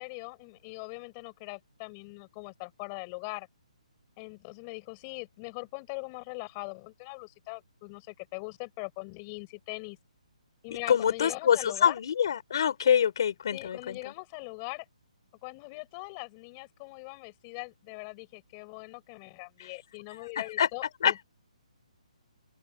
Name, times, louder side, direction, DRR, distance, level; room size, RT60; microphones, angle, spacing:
voice 1, 0.0-3.5 4.2-10.0 10.6-12.0 13.5-14.8 15.4-21.2, left 31 dB, 15° left, 6.5 m, -41 dB
voice 2, 10.9-14.0 20.6-20.7 21.0-21.2, left 8 dB, 35° left, 6.3 m, -25 dB
open air
hypercardioid pair, 180°, 4 cm